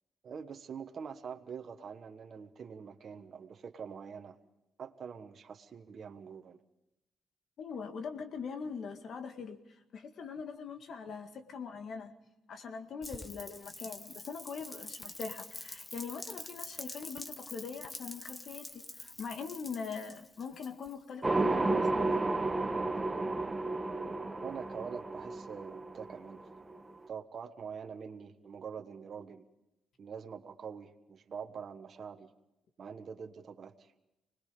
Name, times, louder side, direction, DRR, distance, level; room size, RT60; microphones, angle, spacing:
voice 1, 0.2-4.4 4.8-6.6 24.4-26.4 27.1-29.4 30.0-32.3 32.8-33.9, right 6 dB, 50° right, 6 dB, 1.3 m, -45 dB
voice 2, 7.6-9.6 9.9-12.1 12.5-22.3, left 5 dB, 60° left, 7 dB, 1.9 m, -42 dB
Rain, 13.0-21.1, left 2 dB, 20° left, 1.3 m, -46 dB
sound 1, 21.2-27.1, right 2 dB, 20° right, 1.3 m, -32 dB
25.5 x 20.0 x 5.1 m, 0.94 s
cardioid pair, 90°, 0 cm